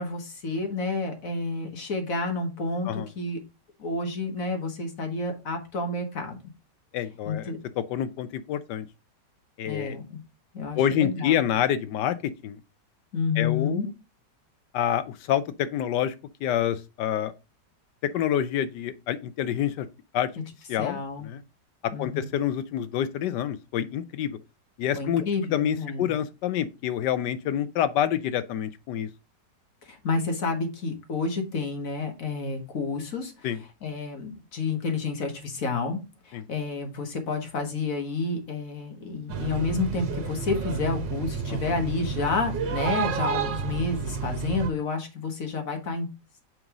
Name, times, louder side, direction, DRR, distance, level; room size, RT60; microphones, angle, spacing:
voice 1, 0.0-3.4 3.8-6.4 7.3-7.6 9.7-10.2 10.5-11.5 13.1-13.9 20.8-21.3 21.9-22.3 24.9-26.1 29.8-33.5 33.8-36.0 36.2-46.1, left 3 dB, 50° left, 1.6 m, -30 dB
voice 2, 6.9-8.9 9.6-10.0 10.8-12.2 12.4-12.6 13.4-13.9 14.7-16.1 16.4-17.3 18.1-19.9 20.1-20.3 20.7-21.4 22.0-24.4 24.8-25.2 25.5-29.1 33.4-33.6 36.3-36.4 41.5-41.6, left 10 dB, 80° left, 1.2 m, -27 dB
sound 1, 39.3-44.7, right 6 dB, 80° right, 1.6 m, -30 dB
6.0 x 5.3 x 3.6 m
omnidirectional pair, 1.9 m